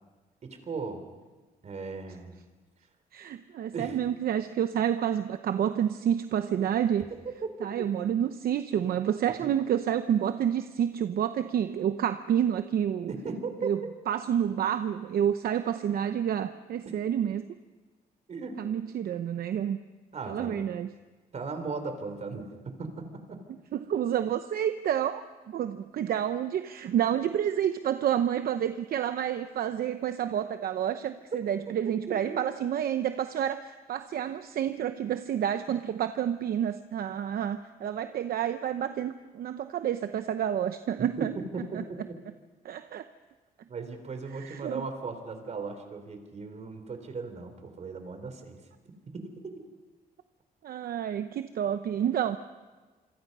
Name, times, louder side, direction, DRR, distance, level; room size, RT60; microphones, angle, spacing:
voice 1, 0.4-1.0 1.6-2.4 3.7-4.0 7.4-7.5 7.8-7.9 13.1-13.7 18.3-18.6 20.1-20.6 21.3-23.4 31.8-32.4 41.0-41.8 43.7-48.6 49.1-49.6, right 4 dB, 45° right, 7 dB, 3.8 m, -37 dB
voice 2, 3.1-7.1 7.6-13.1 13.6-13.8 14.1-17.5 18.6-19.8 20.3-20.9 23.7-41.3 41.7-41.8 42.6-43.1 44.3-44.9 50.6-52.4, right 9 dB, 70° right, 10 dB, 0.8 m, -29 dB
27.0 x 25.5 x 5.5 m, 1.3 s
cardioid pair, 130°, 16 cm